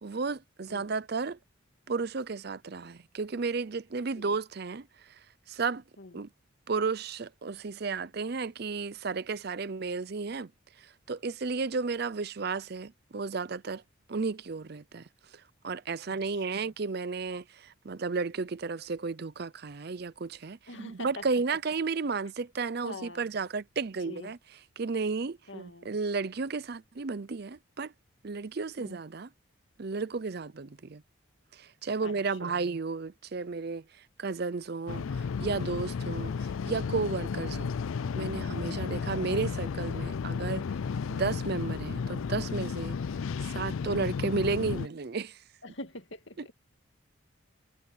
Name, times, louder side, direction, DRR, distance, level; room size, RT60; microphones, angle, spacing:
voice 1, 0.0-1.4 1.9-5.2 5.5-5.8 6.1-6.3 6.7-10.5 10.8-13.8 14.1-15.1 15.6-24.4 24.8-27.9 28.2-29.3 29.8-31.0 31.5-33.8 34.2-37.7 38.2-40.6 41.1-43.0 43.4-45.4, right 4 dB, 50° right, 0.5 m, -33 dB
voice 2, 16.1-16.7 20.7-21.6 22.8-23.3 24.0-24.3 25.5-25.9 28.8-29.0 32.0-32.7 38.9-39.0 45.6-46.5, left 2 dB, 60° left, 2.3 m, -45 dB
sound 1, 34.9-44.9, left 5 dB, 80° left, 0.4 m, -33 dB
head